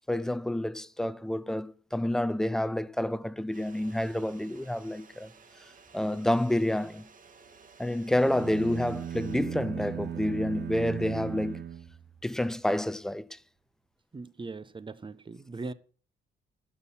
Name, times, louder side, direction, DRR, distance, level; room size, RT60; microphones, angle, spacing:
voice 1, 0.1-5.3 5.9-7.1 7.8-11.6 12.2-13.4, left 1 dB, ahead, 0.6 m, -29 dB
sound 1, 3.5-9.4, right 5 dB, 40° right, 2.1 m, -55 dB
sound 2, 8.1-12.5, right 9 dB, 60° right, 1.8 m, -38 dB
voice 2, 14.1-15.7, right 3 dB, 25° right, 1.0 m, -40 dB
11.5 x 6.6 x 7.4 m
cardioid pair, 90°, 20 cm